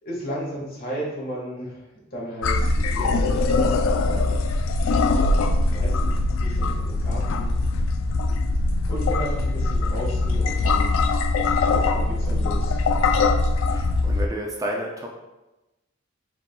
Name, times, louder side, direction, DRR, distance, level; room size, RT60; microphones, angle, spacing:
voice 1, 0.0-1.8 2.1-4.4 5.7-7.8 8.9-11.2 11.7-12.8, right 1 dB, 50° left, -4 dB, 1.3 m, -34 dB
sound 1, 2.4-14.3, left 3 dB, 80° left, 0.3 m, -22 dB
voice 2, 13.7-15.2, right 1 dB, 15° right, 0 dB, 0.4 m, -31 dB
4.8 x 3.4 x 2.2 m, 1.0 s
head